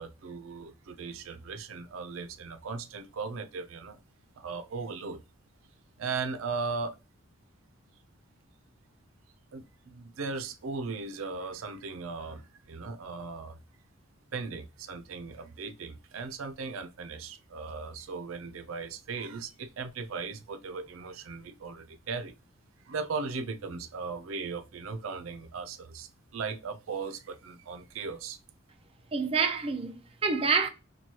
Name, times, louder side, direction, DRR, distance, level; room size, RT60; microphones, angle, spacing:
voice 1, 0.0-4.0 4.4-5.2 6.0-7.0 9.5-13.6 14.3-22.4 22.8-28.4, right 4 dB, 85° right, 0.5 m, -37 dB
voice 2, 29.1-30.7, right 5 dB, 30° right, 0.4 m, -27 dB
4.5 x 2.3 x 2.8 m
head